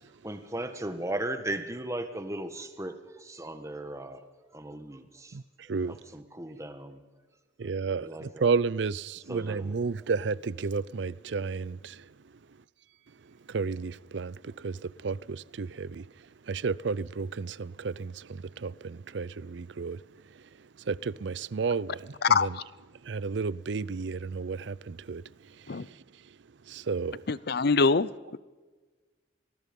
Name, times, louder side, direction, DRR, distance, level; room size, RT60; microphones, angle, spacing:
voice 1, 0.0-4.2 4.5-5.4 5.7-7.0 8.0-8.4 9.3-9.7, right 1 dB, 15° right, 1.6 m, -37 dB
voice 2, 5.3-6.2 7.6-12.6 13.1-22.6 23.0-27.3, right 4 dB, 65° right, 0.5 m, -33 dB
voice 3, 22.2-22.6 25.7-25.9 27.3-28.1, left 4 dB, 55° left, 0.6 m, -24 dB
26.0 x 19.5 x 5.4 m
head